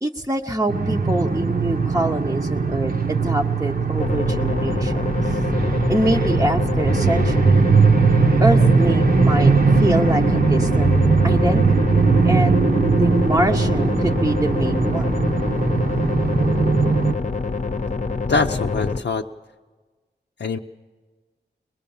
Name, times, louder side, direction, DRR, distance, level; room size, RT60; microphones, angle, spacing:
voice 1, 0.0-5.4 5.9-7.6 8.4-11.0 11.2-12.5 12.8-15.2, right 1 dB, 15° right, -1 dB, 0.8 m, -25 dB
sound 1, 0.7-17.1, right 4 dB, 55° right, 0.9 m, -19 dB
sound 2, 4.0-19.0, left 4 dB, 40° left, 0.8 m, -26 dB
voice 2, 18.3-19.2 20.4-20.6, left 4 dB, 70° left, 2 dB, 0.6 m, -23 dB
23.0 x 20.5 x 7.1 m, 1.3 s
wide cardioid pair, 95°, 19 cm